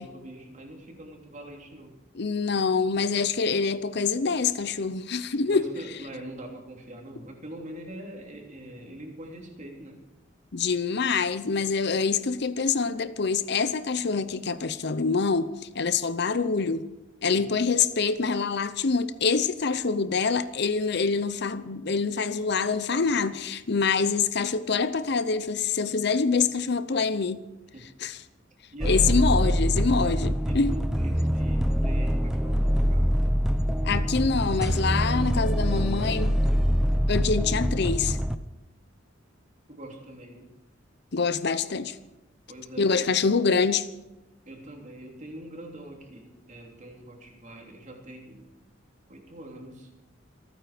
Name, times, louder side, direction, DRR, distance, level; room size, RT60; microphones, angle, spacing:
voice 1, 0.0-1.9 5.4-10.0 17.2-17.5 27.7-27.9 28.7-29.1 30.4-33.1 39.7-40.5 42.5-43.2 44.4-48.5 49.1-49.9, right 1 dB, 40° right, 3.2 m, -43 dB
voice 2, 2.1-5.7 10.5-16.9 17.2-27.4 28.0-28.2 28.9-30.7 33.8-36.4 37.1-38.2 41.1-42.0 42.8-43.9, left 5 dB, 60° left, 0.7 m, -25 dB
sound 1, 28.8-38.4, equal, 5° right, 0.7 m, -24 dB
26.5 x 9.3 x 5.1 m
head